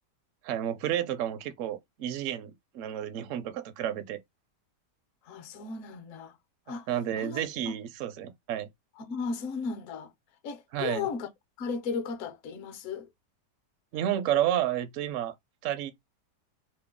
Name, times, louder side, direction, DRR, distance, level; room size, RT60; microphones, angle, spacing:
voice 1, 0.4-4.2 6.9-8.7 10.7-11.1 13.9-15.3 15.6-15.9, right 11 dB, 70° right, 0.7 m, -31 dB
voice 2, 5.2-6.4 6.7-6.9 7.2-7.8 9.0-10.1 10.4-11.3 11.6-13.1, left 5 dB, 60° left, 0.9 m, -35 dB
3.0 x 2.1 x 3.5 m
omnidirectional pair, 1.8 m